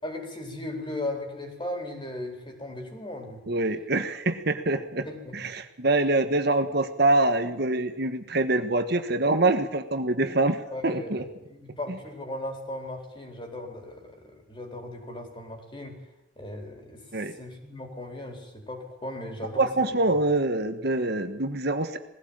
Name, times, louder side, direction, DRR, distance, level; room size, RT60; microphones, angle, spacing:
voice 1, 0.0-3.5 5.0-5.5 10.7-16.0 16.4-17.0 17.3-19.7 19.9-20.0, left 1 dB, 25° left, 3 dB, 4.5 m, -37 dB
voice 2, 3.5-5.1 5.3-11.3 17.1-17.3 19.6-22.0, right 2 dB, 60° right, 8 dB, 1.4 m, -25 dB
20.0 x 16.0 x 9.0 m, 0.86 s
head